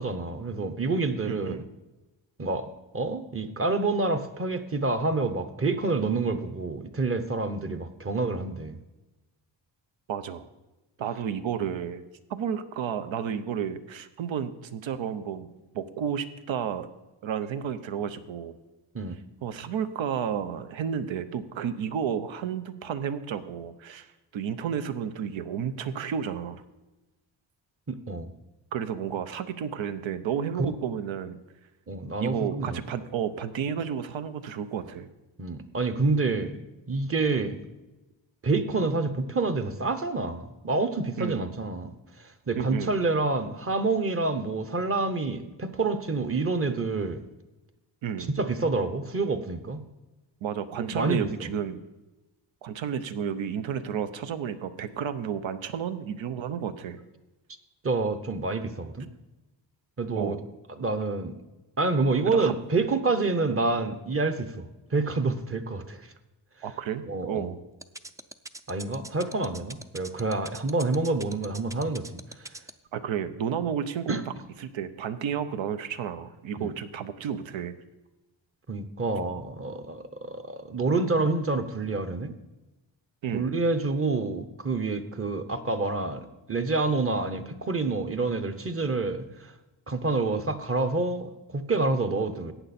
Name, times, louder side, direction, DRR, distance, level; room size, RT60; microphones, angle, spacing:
voice 1, 0.0-1.6 2.4-2.7 2.9-8.8 18.9-19.2 27.9-28.3 30.6-30.7 31.9-32.8 35.4-36.6 36.9-37.6 38.4-47.2 48.3-49.8 50.8-51.5 57.8-59.1 60.0-60.4 60.7-61.3 61.8-64.6 64.9-66.1 67.1-67.5 68.7-72.1 72.4-72.5 74.1-74.2 76.6-76.7 78.7-82.3 83.3-89.5 89.9-92.5, right 3 dB, 30° right, 9 dB, 0.9 m, -28 dB
voice 2, 1.2-1.7 10.1-10.4 11.0-12.0 12.3-15.5 15.7-16.9 17.2-18.5 19.4-24.1 24.3-26.6 28.7-31.4 32.2-35.1 41.2-41.5 42.6-43.0 48.0-48.3 50.4-51.8 52.6-57.0 60.1-60.4 62.3-62.5 66.6-67.6 72.9-74.2 74.6-77.8 83.2-83.5, right 8 dB, 85° right, 11 dB, 0.9 m, -32 dB
sound 1, 67.8-72.7, right 2 dB, 10° right, 0.3 m, -40 dB
15.0 x 9.0 x 4.3 m, 1.1 s
wide cardioid pair, 125°, 45 cm